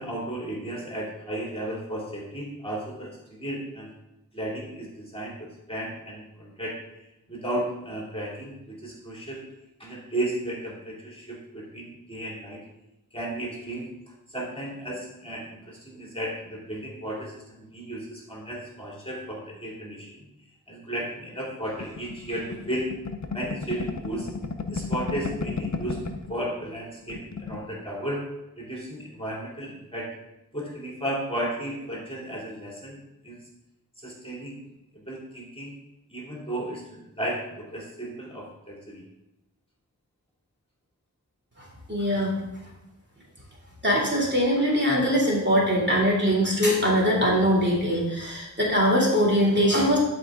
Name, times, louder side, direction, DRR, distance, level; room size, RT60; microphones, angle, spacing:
voice 1, 0.0-3.9 4.3-6.8 7.3-9.4 9.8-12.6 13.1-13.9 14.3-20.3 20.7-22.9 23.3-24.3 24.7-26.0 26.3-28.2 28.6-30.1 30.5-33.0 33.2-33.4 34.0-34.6 34.9-35.7 36.1-39.0, right 1 dB, 15° left, -4 dB, 2.4 m, -34 dB
sound 1, 21.8-26.3 26.7-26.8 27.0-27.6, left 4 dB, 50° left, 0.8 m, -33 dB
voice 2, 41.9-42.3 43.8-50.0, equal, 30° right, -5 dB, 2.6 m, -22 dB
11.0 x 4.5 x 3.6 m, 0.92 s
wide cardioid pair, 50°, 35 cm